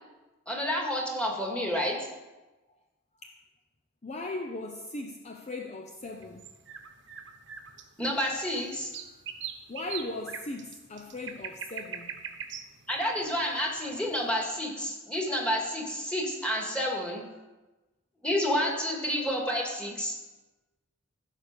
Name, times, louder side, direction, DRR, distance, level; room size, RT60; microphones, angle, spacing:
voice 1, 0.5-2.0 8.0-8.9 12.9-17.2 18.2-20.1, equal, 5° left, -2 dB, 2.2 m, -29 dB
voice 2, 4.0-6.4 9.7-12.2, left 2 dB, 35° left, 3 dB, 0.6 m, -38 dB
sound 1, 6.0-14.2, right 7 dB, 60° right, 1.1 m, -42 dB
15.0 x 5.8 x 6.7 m, 1.1 s
head